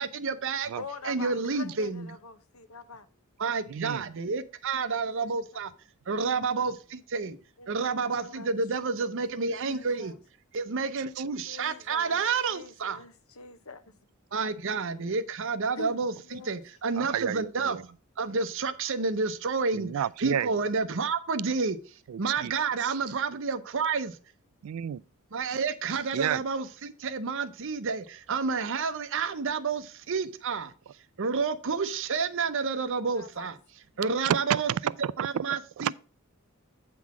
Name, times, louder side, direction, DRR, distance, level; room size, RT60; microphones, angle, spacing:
voice 1, 0.0-0.7 1.0-2.1 3.4-5.7 6.1-7.4 7.7-10.1 10.5-13.0 14.3-17.8 18.2-21.8 22.2-24.2 25.3-30.7 31.2-33.6 34.0-34.7 35.2-36.0, right 4 dB, 65° right, 0.7 m, -30 dB
voice 2, 0.8-3.1 4.2-4.3 5.1-5.6 7.6-8.5 8.8-9.0 9.6-10.2 11.4-13.9 15.7-16.6 32.8-33.5, left 4 dB, 75° left, 0.9 m, -45 dB
voice 3, 3.7-4.1 17.0-17.8 19.7-20.5 22.1-22.5 22.8-23.0 24.6-25.0 25.5-25.6 26.1-26.4 34.2-35.4 35.8-36.0, right 9 dB, 80° right, 0.3 m, -31 dB
8.4 x 3.9 x 5.9 m
head